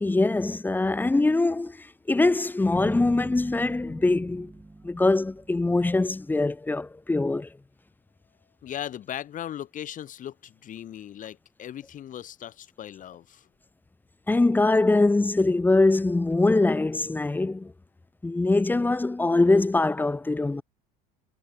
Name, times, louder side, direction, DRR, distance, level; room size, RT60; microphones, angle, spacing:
voice 1, 0.0-4.5 4.8-7.5 14.3-17.7 18.2-20.6, left 2 dB, 10° left, 0.9 m, -23 dB
sound 1, 2.8-6.2, right 2 dB, 10° right, 2.9 m, -42 dB
voice 2, 8.6-13.5, left 10 dB, 40° left, 2.7 m, -38 dB
supercardioid pair, 100°, 19 cm